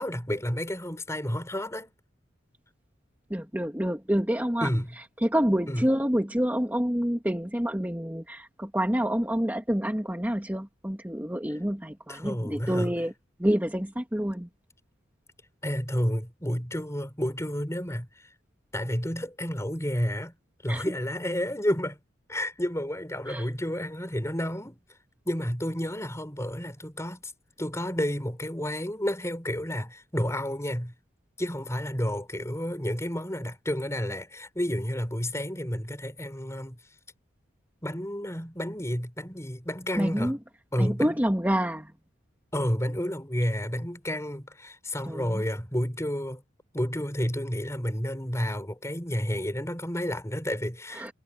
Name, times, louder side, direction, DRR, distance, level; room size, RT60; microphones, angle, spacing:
voice 1, 0.0-1.9 4.6-4.9 5.7-5.9 12.1-12.9 15.6-18.1 18.7-20.3 20.6-22.0 22.3-24.8 25.2-27.3 27.6-30.9 31.4-36.8 37.8-40.3 40.7-41.2 42.5-46.4 46.7-51.1, equal, 15° left, 5.9 m, -30 dB
voice 2, 3.3-4.7 5.0-13.1 13.4-14.5 20.7-20.8 23.3-23.5 39.9-40.4 40.8-41.9 45.1-45.4 50.9-51.1, equal, 10° right, 1.9 m, -27 dB
head